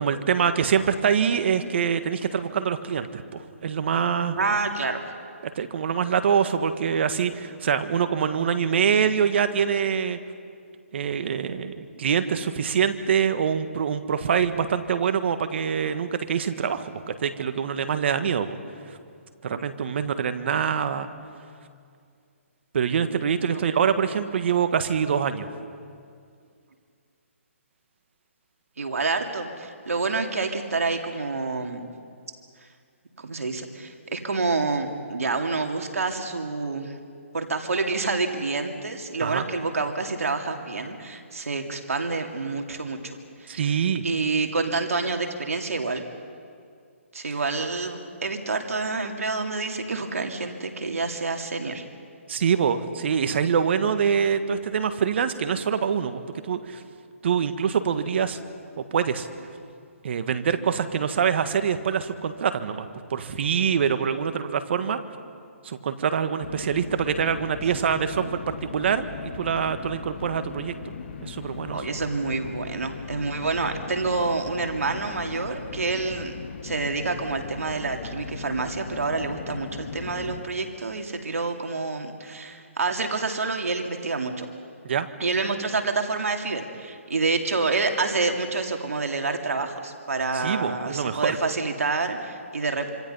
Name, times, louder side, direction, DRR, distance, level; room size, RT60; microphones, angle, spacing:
voice 1, 0.0-4.4 5.5-10.2 10.9-18.6 19.4-21.1 22.7-25.5 39.2-39.4 43.5-44.0 52.3-56.8 57.2-58.4 58.8-59.3 60.0-65.0 65.6-69.1 69.4-70.9 71.2-71.8 84.8-85.1 90.3-91.4, right 7 dB, 55° right, 10 dB, 1.6 m, -25 dB
voice 2, 4.4-5.0 19.5-19.6 28.8-31.9 33.2-36.9 37.3-43.0 43.4-43.7 44.0-46.0 47.1-51.8 71.7-76.3 76.6-84.5 85.2-92.9, right 3 dB, 90° right, 4 dB, 2.5 m, -28 dB
sound 1, 66.4-80.4, left 5 dB, 55° left, 1.9 m, -38 dB
26.0 x 26.0 x 5.6 m, 2.3 s
hypercardioid pair, 155°, 7 cm